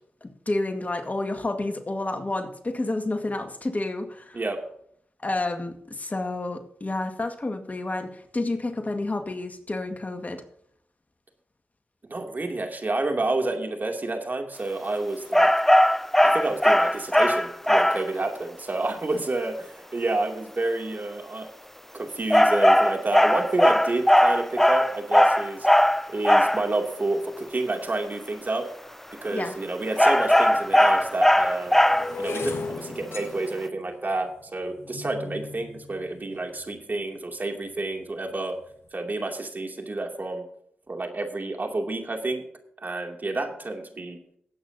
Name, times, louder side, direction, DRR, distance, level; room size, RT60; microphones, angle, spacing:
voice 1, 0.2-4.4 5.2-10.4 29.3-29.6, left 2 dB, 35° left, 6 dB, 1.9 m, -30 dB
voice 2, 12.1-15.5 16.2-21.5 21.9-25.7 26.1-28.7 29.2-31.8 32.2-38.6 38.9-40.4 40.9-42.4 42.8-44.2, right 2 dB, 45° right, 3 dB, 2.7 m, -29 dB
sound 1, 15.3-18.1 22.3-26.7 30.0-32.2, equal, 5° left, 0.5 m, -19 dB
sound 2, 30.0-30.1 30.8-37.0 37.6-38.0 38.3-38.6, left 3 dB, 65° left, 1.7 m, -38 dB
17.5 x 8.6 x 2.8 m, 0.66 s
supercardioid pair, 40°, 4 cm